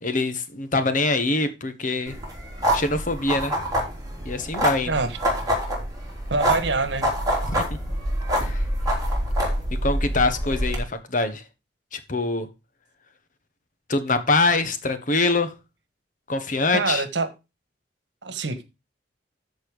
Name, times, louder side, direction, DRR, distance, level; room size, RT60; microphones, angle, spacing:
voice 1, 0.0-2.1 2.7-3.6 4.2-5.0 7.4-7.8 8.3-8.6 9.8-11.4 11.9-12.5 13.9-15.5 16.3-17.0, left 3 dB, 45° left, 1.3 m, -24 dB
sound 1, 2.1-10.8, equal, 20° right, 3.5 m, -26 dB
voice 2, 4.9-5.2 6.3-7.1 16.7-17.3 18.2-18.6, right 3 dB, 75° right, 1.4 m, -25 dB
13.5 x 4.4 x 4.9 m
head